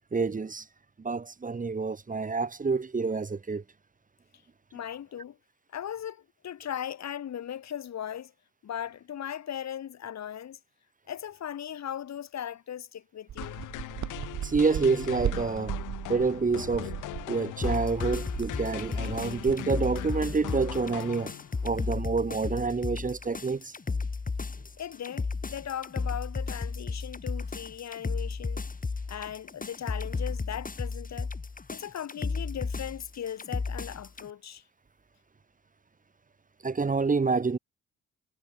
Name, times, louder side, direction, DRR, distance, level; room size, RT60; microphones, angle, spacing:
voice 1, 0.1-0.6 1.0-3.6 14.4-15.7 16.1-16.9 17.3-21.3 21.6-23.7 36.6-37.6, right 4 dB, 25° right, 1.8 m, -28 dB
voice 2, 4.7-5.4 5.7-8.3 8.6-10.6 11.1-13.6 24.8-28.7 29.1-31.3 31.7-34.6, left 10 dB, 60° left, 3.9 m, -38 dB
sound 1, 13.3-20.4, right 10 dB, 65° right, 4.6 m, -37 dB
sound 2, 13.4-21.7, left 16 dB, 90° left, 4.7 m, -40 dB
sound 3, 17.6-34.3, left 4 dB, 30° left, 6.4 m, -34 dB
cardioid pair, 90°, 30 cm